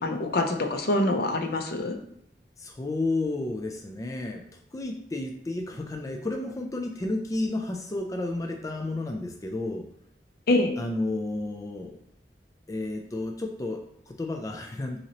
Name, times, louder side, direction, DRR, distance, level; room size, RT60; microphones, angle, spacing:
voice 1, 0.0-2.0 10.5-10.7, left 2 dB, 60° left, 5 dB, 0.6 m, -25 dB
voice 2, 2.6-9.9 10.8-12.0 12.7-15.0, left 2 dB, 20° left, 2 dB, 0.4 m, -32 dB
5.7 x 2.9 x 2.9 m, 0.78 s
head